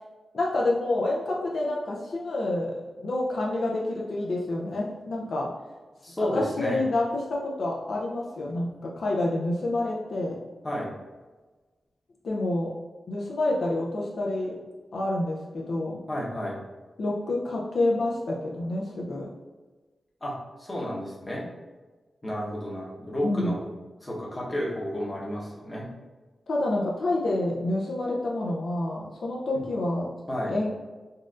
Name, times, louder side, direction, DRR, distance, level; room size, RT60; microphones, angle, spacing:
voice 1, 0.3-2.7 3.0-5.5 6.2-10.4 12.2-12.7 13.1-14.6 14.9-16.0 17.0-19.3 23.2-23.6 26.5-30.1 30.5-30.7, left 2 dB, 70° left, -2 dB, 0.4 m, -28 dB
voice 2, 6.0-6.8 10.6-10.9 16.1-16.6 20.2-21.4 22.2-23.6 24.0-25.9 30.3-30.6, equal, 20° left, -5 dB, 0.8 m, -31 dB
4.0 x 2.4 x 2.4 m, 1.3 s
wide cardioid pair, 120°, 0 cm